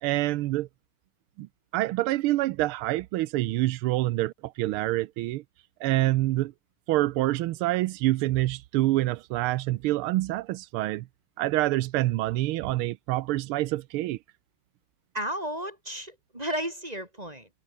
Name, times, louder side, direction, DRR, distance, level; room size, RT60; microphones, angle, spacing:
voice 1, 0.0-0.7 1.4-1.5 1.7-5.4 5.8-6.5 6.9-11.1 11.4-14.2, right 17 dB, 90° right, 1.5 m, -26 dB
voice 2, 15.1-17.5, right 1 dB, 15° right, 3.6 m, -33 dB
omnidirectional pair, 2.4 m